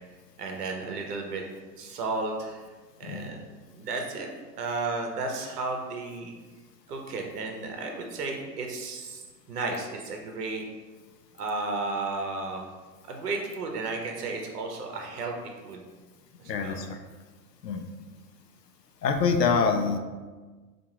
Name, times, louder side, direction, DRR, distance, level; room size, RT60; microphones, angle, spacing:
voice 1, 0.4-1.4 1.8-2.7 3.0-3.4 3.7-4.3 4.6-6.3 6.9-10.6 11.4-12.7 13.1-15.3 15.6-15.8 16.6-16.8, right 3 dB, 70° right, 2 dB, 0.8 m, -33 dB
voice 2, 16.5-17.0 17.6-17.8 19.0-20.0, left 5 dB, 80° left, 6 dB, 0.6 m, -25 dB
4.5 x 2.5 x 2.9 m, 1.3 s
figure-of-eight pair, 95°, 49 cm